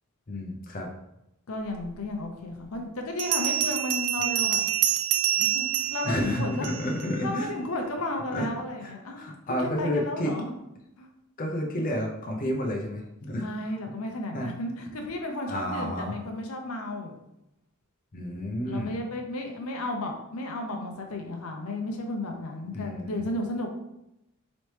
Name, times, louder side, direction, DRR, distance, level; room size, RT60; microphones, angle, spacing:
voice 1, 0.3-0.9 6.0-7.5 8.3-8.5 8.8-10.3 11.4-13.5 14.3-14.5 15.5-16.1 18.1-18.9 22.7-23.2, equal, 40° left, 0 dB, 0.6 m, -31 dB
voice 2, 1.5-4.6 5.3-6.7 7.2-9.2 9.6-10.5 11.0-11.1 13.4-17.2 18.7-23.7, left 1 dB, 80° left, 2 dB, 0.7 m, -33 dB
Bell, 2.0-2.1 3.2-7.1, right 11 dB, 80° right, 0.4 m, -27 dB
4.1 x 3.2 x 3.2 m, 0.86 s
head